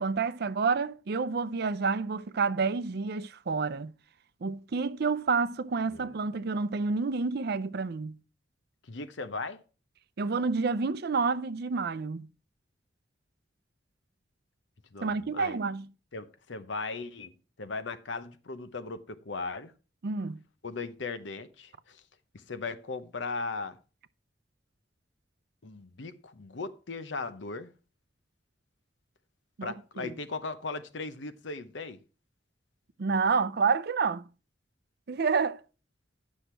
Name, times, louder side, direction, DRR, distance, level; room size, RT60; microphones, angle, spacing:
voice 1, 0.0-3.9 4.4-8.2 10.2-12.3 15.0-15.9 20.0-20.4 29.6-30.1 33.0-34.2 35.1-35.6, right 4 dB, 60° right, 0.5 m, -29 dB
voice 2, 8.9-9.6 14.9-15.6 16.1-17.3 17.6-19.7 20.6-22.0 22.5-23.8 25.6-27.7 29.6-32.0, left 3 dB, 75° left, 0.8 m, -37 dB
10.0 x 6.4 x 4.4 m
head